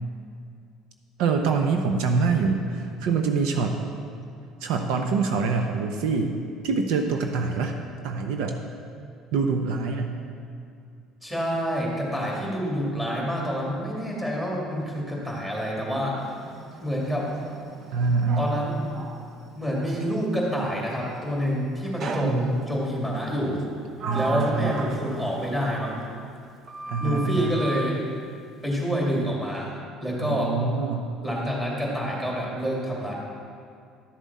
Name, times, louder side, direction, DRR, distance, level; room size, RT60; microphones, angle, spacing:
voice 1, 1.2-3.8 4.6-6.3 6.6-7.8 8.0-8.6 9.3-10.2 17.9-18.6 22.2-22.6 24.0-24.8 26.9-27.6 30.2-31.1, right 4 dB, 75° right, 4 dB, 0.7 m, -25 dB
voice 2, 11.2-16.2 16.8-17.3 18.4-18.8 19.5-23.6 24.1-26.0 27.0-28.0 28.6-29.7 30.0-30.5 31.2-33.1, equal, 10° right, -4 dB, 2.5 m, -27 dB
Sliding door, 16.2-20.2 22.0-22.9 23.6-26.4 26.7-28.0, right 3 dB, 40° right, 0.6 m, -37 dB
12.0 x 7.4 x 4.2 m, 2.3 s
cardioid pair, 125°, 0 cm